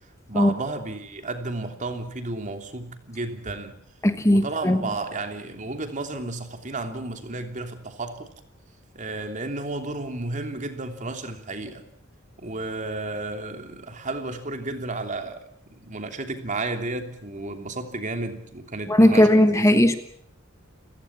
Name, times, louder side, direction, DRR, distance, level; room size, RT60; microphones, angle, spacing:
voice 1, 0.3-3.8 4.3-8.3 8.9-11.8 12.4-19.9, right 2 dB, 40° right, 6 dB, 3.1 m, -32 dB
voice 2, 4.0-4.8 18.9-20.0, left 1 dB, 15° left, 9 dB, 1.2 m, -17 dB
29.0 x 17.0 x 7.5 m, 0.67 s
head